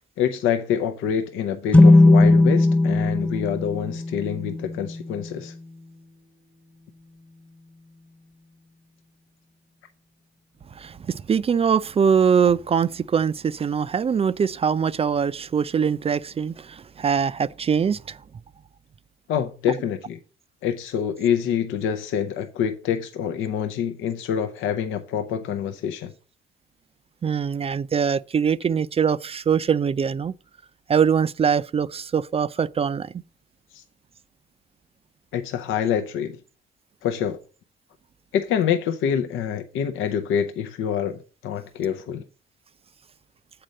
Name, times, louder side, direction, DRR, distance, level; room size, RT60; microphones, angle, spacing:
voice 1, 0.2-5.5 19.3-20.2 20.6-26.1 33.7-33.8 35.3-36.4 37.0-37.4 38.3-42.2, left 8 dB, 85° left, 0.6 m, -26 dB
sound 1, 1.7-5.3, left 2 dB, 5° left, 0.8 m, -17 dB
voice 2, 10.8-18.2 27.2-30.3 30.9-33.1, right 7 dB, 30° right, 0.3 m, -22 dB
7.6 x 4.2 x 6.4 m
cardioid pair, 90°, 20 cm